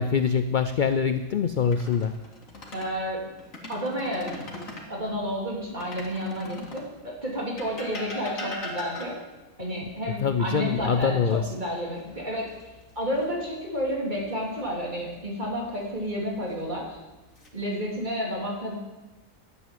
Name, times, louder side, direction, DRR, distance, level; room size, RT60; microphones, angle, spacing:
voice 1, 0.0-2.2 10.2-11.4, left 6 dB, 60° left, 10 dB, 0.5 m, -24 dB
sound 1, 1.6-2.9 3.4-4.9 5.8-6.9 7.6-9.4 11.3-12.0 12.4-12.6 15.5-16.1 16.8-17.5, left 1 dB, 75° left, 2.5 m, -40 dB
voice 2, 2.7-3.4 3.7-4.6 4.9-9.2 9.6-12.5 12.9-17.0 17.5-18.8, equal, 35° right, -2 dB, 3.3 m, -31 dB
11.0 x 8.2 x 9.1 m, 1.1 s
omnidirectional pair, 1.4 m